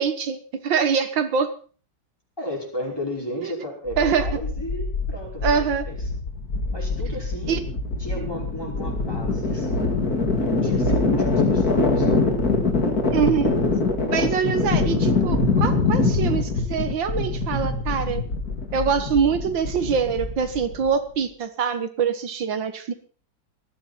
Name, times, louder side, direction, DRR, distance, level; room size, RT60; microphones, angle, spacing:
voice 1, 0.0-1.5 3.4-3.5 4.0-4.3 5.4-5.8 7.5-7.6 13.1-13.5 14.1-18.2 18.7-22.9, right 6 dB, 85° right, 9 dB, 2.1 m, -24 dB
voice 2, 2.4-6.1 6.7-7.6 8.0-10.0 10.4-12.4, equal, 10° left, -1 dB, 5.3 m, -34 dB
sound 1, 3.9-20.9, left 3 dB, 50° left, 3.0 m, -24 dB
19.0 x 14.5 x 4.3 m, 0.39 s
omnidirectional pair, 2.0 m